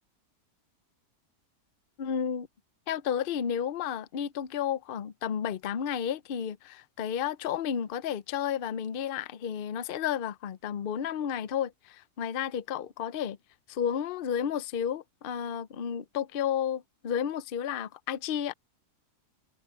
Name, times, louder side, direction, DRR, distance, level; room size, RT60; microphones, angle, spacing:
voice 1, 2.0-2.5 2.9-13.4 13.7-18.5, left 8 dB, 50° left, 0.6 m, -32 dB
omnidirectional pair, 1.7 m